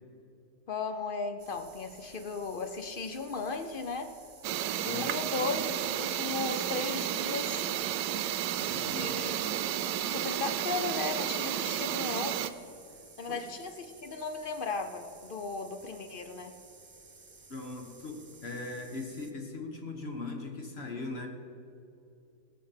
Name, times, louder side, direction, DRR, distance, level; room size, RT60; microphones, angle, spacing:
voice 1, 0.7-4.1 4.8-7.7 8.9-9.6 10.1-12.4 13.2-16.6, left 4 dB, 60° left, 7 dB, 0.5 m, -36 dB
sound 1, 1.4-19.3, right 4 dB, 35° right, 0.4 m, -55 dB
sound 2, 4.4-12.5, right 11 dB, 90° right, 1.3 m, -32 dB
voice 2, 4.9-5.4 8.6-9.2 12.9-13.0 13.3-13.5 17.5-21.3, left 3 dB, 40° left, 3 dB, 1.4 m, -40 dB
19.5 x 6.6 x 5.7 m, 2.7 s
omnidirectional pair, 1.8 m